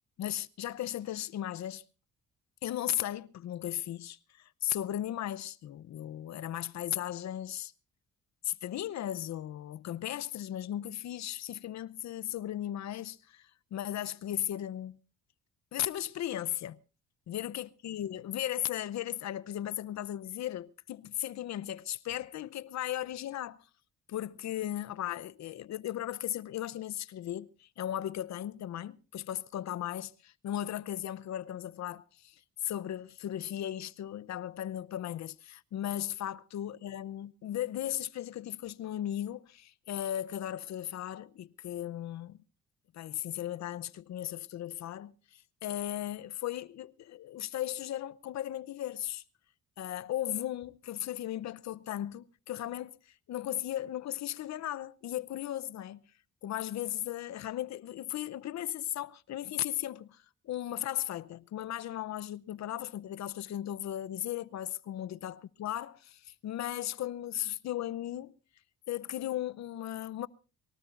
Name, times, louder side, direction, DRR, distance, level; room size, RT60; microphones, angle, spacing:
voice 1, 0.2-1.8 2.6-7.7 8.4-15.0 15.7-16.8 17.3-23.7 24.1-42.4 42.9-49.2 49.8-56.0 56.4-68.3 68.9-70.3, left 12 dB, 65° left, 0.7 m, -36 dB
23.5 x 18.0 x 2.5 m
cardioid pair, 90°, 30 cm